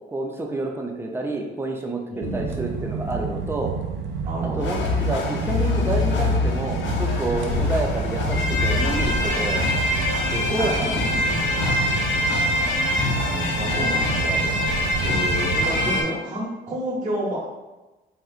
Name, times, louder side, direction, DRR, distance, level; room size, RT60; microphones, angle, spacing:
voice 1, 0.1-3.7 4.4-9.7 10.3-11.3, right 2 dB, 10° right, 1 dB, 0.6 m, -29 dB
voice 2, 2.1-2.5 4.2-4.7 10.6-11.0 13.3-17.5, right 1 dB, 40° right, -6 dB, 1.3 m, -30 dB
sound 1, 2.2-15.8, right 5 dB, 75° right, 0.4 m, -30 dB
sound 2, 4.6-16.0, left 2 dB, 70° left, 0.7 m, -24 dB
4.2 x 2.5 x 2.4 m, 1.1 s
cardioid pair, 90°, 20 cm